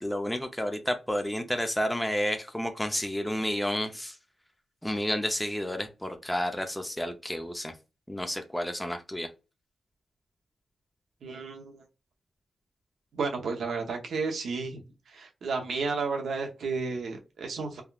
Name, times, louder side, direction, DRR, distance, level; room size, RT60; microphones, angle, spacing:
voice 1, 0.0-4.1 4.8-7.7 8.1-9.3, equal, 5° left, 5 dB, 0.5 m, -31 dB
voice 2, 11.2-11.8 13.1-14.8 15.1-17.8, right 4 dB, 80° right, 3 dB, 0.7 m, -32 dB
3.5 x 2.3 x 2.3 m, 0.29 s
cardioid pair, 75°, 0 cm